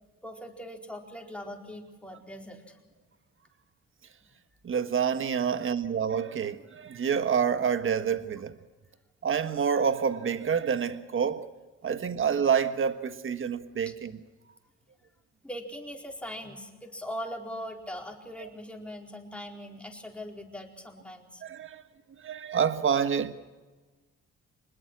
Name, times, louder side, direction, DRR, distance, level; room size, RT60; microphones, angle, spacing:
voice 1, 0.2-2.8 13.9-14.0 15.4-21.4, equal, 5° left, 4.4 m, -41 dB
voice 2, 4.6-8.6 9.2-11.5 11.8-14.2 18.4-18.5 21.4-21.8 22.2-23.3, right 7 dB, 45° right, 1.4 m, -28 dB
25.5 x 20.5 x 6.2 m
cardioid pair, 90°, 30 cm